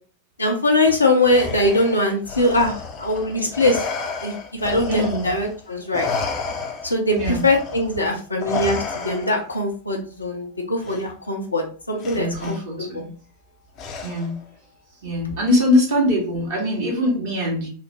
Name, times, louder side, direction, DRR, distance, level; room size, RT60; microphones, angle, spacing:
voice 1, 0.4-3.9 4.2-6.1 6.8-13.0, left 1 dB, 80° left, 1 dB, 0.7 m, -22 dB
Respiratory sounds, 1.2-5.6 5.9-9.6 10.8-11.0 12.0-12.6 13.8-14.4, left 5 dB, 35° left, 0.5 m, -31 dB
voice 2, 4.9-5.2 7.1-7.5 12.1-13.1 14.0-14.4 15.0-17.7, left 1 dB, 55° right, -2 dB, 1.4 m, -22 dB
3.2 x 2.0 x 3.1 m, 0.39 s
figure-of-eight pair, 90°, 0 cm